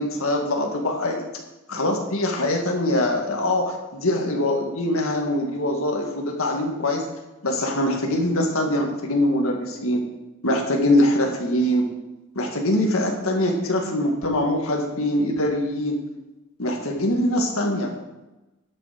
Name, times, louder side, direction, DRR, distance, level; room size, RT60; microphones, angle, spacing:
voice 1, 0.0-1.2 1.7-7.1 7.4-10.0 10.4-11.8 12.4-16.0 16.6-17.9, left 1 dB, 70° left, 1 dB, 1.9 m, -23 dB
11.5 x 7.1 x 5.1 m, 1.0 s
head